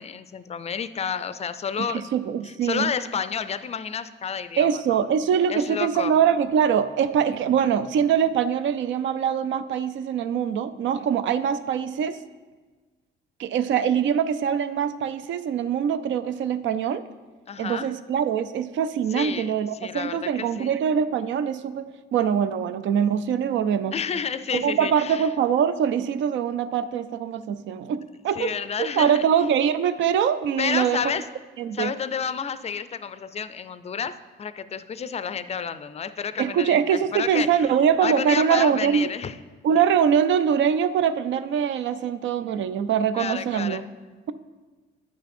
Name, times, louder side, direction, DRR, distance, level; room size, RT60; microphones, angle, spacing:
voice 1, 0.0-2.1 2.4-5.0 5.5-6.1 17.5-17.9 19.1-19.5 19.8-20.7 23.9-25.3 28.3-29.3 30.6-31.3 31.7-37.7 38.0-39.4 43.2-43.8, left 7 dB, 30° left, 13 dB, 0.4 m, -30 dB
voice 2, 1.8-2.9 4.6-12.2 13.4-17.0 17.6-23.9 24.5-28.5 28.8-31.0 31.6-31.9 36.4-39.1 39.6-43.8, right 8 dB, 70° right, 13 dB, 0.5 m, -23 dB
9.2 x 5.7 x 4.3 m, 1.3 s
cardioid pair, 90°, 20 cm